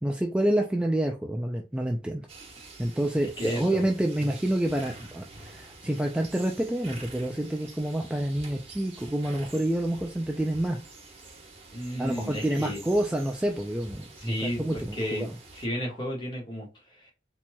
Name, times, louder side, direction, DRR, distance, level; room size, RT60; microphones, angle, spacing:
voice 1, 0.0-2.3 2.8-10.8 12.0-15.4, right 1 dB, 5° right, 0.3 m, -28 dB
sound 1, 2.3-15.7, right 3 dB, 35° right, 1.1 m, -47 dB
voice 2, 3.2-3.8 11.7-12.8 14.2-17.1, equal, 25° left, 1.5 m, -33 dB
4.2 x 3.0 x 2.2 m
head